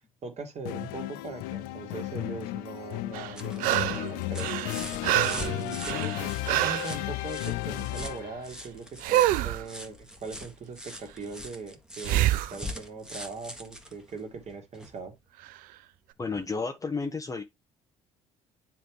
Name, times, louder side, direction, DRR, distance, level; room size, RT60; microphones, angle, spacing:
voice 1, 0.0-4.6 5.3-15.1, right 4 dB, 45° right, 2.1 m, -40 dB
sound 1, 0.7-8.5, left 17 dB, 65° left, 0.4 m, -34 dB
sound 2, 3.0-15.0 16.3-16.4, equal, 5° right, 1.4 m, -43 dB
sound 3, 3.1-4.1 4.4-7.0 9.0-9.6 12.0-12.6 15.5-15.6, right 14 dB, 65° right, 0.5 m, -26 dB
voice 2, 16.2-17.4, left 4 dB, 20° left, 1.0 m, -32 dB
9.8 x 3.4 x 3.1 m
hypercardioid pair, 60°, 15 cm